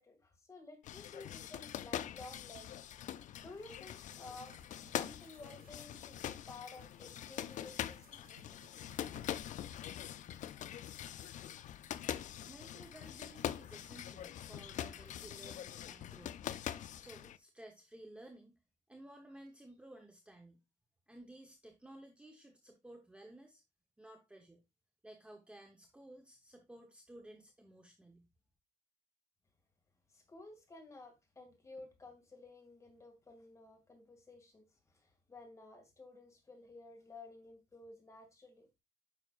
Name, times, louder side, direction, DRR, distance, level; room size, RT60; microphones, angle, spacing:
voice 1, 0.0-2.8 3.4-4.6 4.8-8.2 9.1-9.3 30.1-34.6 34.9-38.7, left 2 dB, 20° left, 2.2 m, -54 dB
sound 1, 0.8-17.4, left 11 dB, 60° left, 0.4 m, -43 dB
sound 2, 3.2-5.8 6.7-9.9, right 7 dB, 80° right, 1.2 m, -67 dB
voice 2, 12.5-16.4 16.9-18.6 18.9-20.6 21.1-23.6 24.0-24.6 25.0-28.3, right 1 dB, 10° right, 0.9 m, -55 dB
9.2 x 5.7 x 2.4 m
cardioid pair, 155°, 15 cm